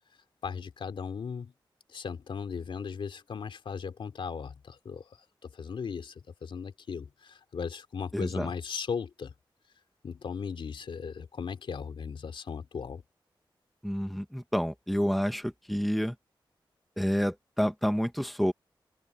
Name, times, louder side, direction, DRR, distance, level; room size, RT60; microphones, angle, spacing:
voice 1, 0.4-1.5 1.9-5.1 5.4-6.1 6.4-9.3 10.0-13.0, left 6 dB, 80° left, 3.1 m, -37 dB
voice 2, 8.1-8.5 13.8-16.1 17.0-18.5, equal, ahead, 1.2 m, -29 dB
wide cardioid pair, 145°, 9 cm